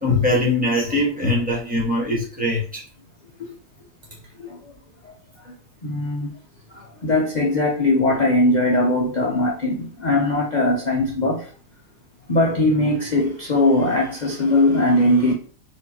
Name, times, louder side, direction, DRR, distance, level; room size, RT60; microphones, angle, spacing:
voice 1, 0.0-2.8, left 2 dB, 5° right, 1.1 m, -21 dB
voice 2, 4.4-4.7 5.0-5.1 5.4-5.5 5.8-6.3 6.7-11.5 12.3-15.3, left 1 dB, 60° left, 0.4 m, -20 dB
4.2 x 2.7 x 2.9 m
omnidirectional pair, 1.8 m